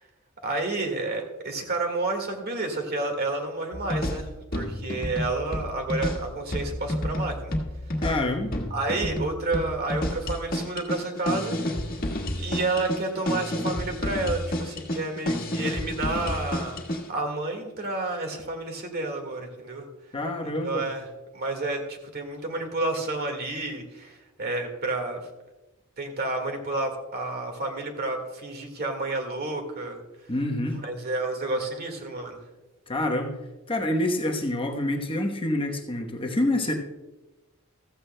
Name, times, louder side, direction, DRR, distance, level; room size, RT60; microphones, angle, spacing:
voice 1, 0.4-7.5 8.7-11.6 11.9-12.0 12.3-19.9 20.4-21.0 21.3-25.2 26.0-30.0 30.8-32.4, right 2 dB, 45° right, 4 dB, 1.8 m, -30 dB
sound 1, 3.7-17.1, left 1 dB, 45° left, 1.6 m, -30 dB
voice 2, 8.0-8.5 20.1-20.9 30.3-30.8 32.9-33.4 33.7-36.7, left 1 dB, 25° left, 2 dB, 1.0 m, -27 dB
15.0 x 14.0 x 2.2 m, 1.1 s
head